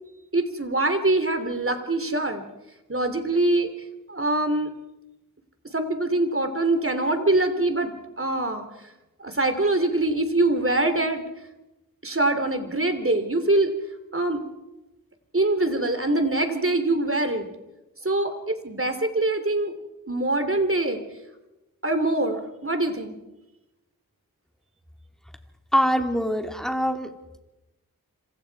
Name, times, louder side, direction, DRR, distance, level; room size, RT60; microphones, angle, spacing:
voice 1, 0.3-2.4 2.9-3.7 4.1-4.7 5.7-8.6 9.2-11.2 12.0-13.7 14.1-14.4 15.3-17.5 18.0-19.8 20.1-21.0 21.8-23.2, right 2 dB, 40° right, 8 dB, 3.2 m, -24 dB
voice 2, 25.7-27.1, equal, ahead, 4 dB, 3.2 m, -23 dB
27.0 x 25.5 x 4.8 m, 1.0 s
wide cardioid pair, 40°, 35 cm